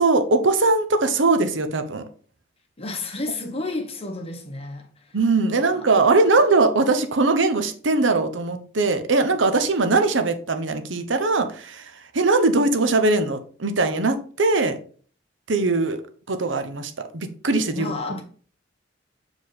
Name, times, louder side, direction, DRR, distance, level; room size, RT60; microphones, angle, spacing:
voice 1, 0.0-2.0 5.1-14.8 15.5-16.0 16.3-17.9, right 3 dB, 85° right, 0.9 m, -21 dB
voice 2, 2.8-5.2 5.4-6.4 17.7-18.2, left 2 dB, 30° left, 1.4 m, -32 dB
6.8 x 4.9 x 4.1 m
head